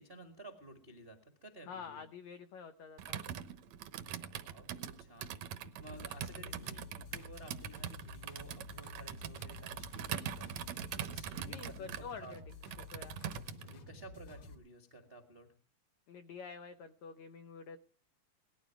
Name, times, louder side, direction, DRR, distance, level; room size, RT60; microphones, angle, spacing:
voice 1, 0.0-2.0 4.2-10.5 10.9-11.9 12.2-12.4 13.6-15.5, right 2 dB, 40° right, 4 dB, 0.8 m, -54 dB
voice 2, 1.7-3.2 6.3-6.8 11.5-12.4 12.9-13.2 16.1-17.8, left 6 dB, 80° left, 9 dB, 1.6 m, -48 dB
Computer keyboard, 3.0-13.8, right 9 dB, 70° right, 1.7 m, -43 dB
sound 1, 5.8-14.5, left 4 dB, 45° left, 3.0 m, -51 dB
18.5 x 14.0 x 4.7 m, 0.39 s
omnidirectional pair, 4.5 m